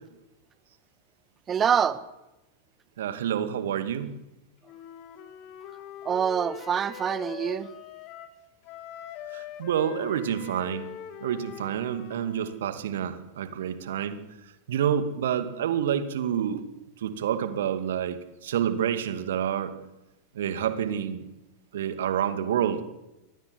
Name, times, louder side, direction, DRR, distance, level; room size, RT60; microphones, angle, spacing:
voice 1, 1.5-2.0 6.0-7.7, right 8 dB, 25° right, 14 dB, 1.6 m, -25 dB
voice 2, 3.0-4.1 9.3-10.9 11.2-14.2 14.7-16.7 17.0-19.7 20.3-21.2 21.7-22.8, right 9 dB, 60° right, 10 dB, 2.4 m, -28 dB
Wind instrument woodwind instrument, 4.6-8.4 8.6-12.6, left 9 dB, 40° left, 2.6 m, -42 dB
24.5 x 19.5 x 7.9 m, 0.98 s
figure-of-eight pair, 90°, 0 cm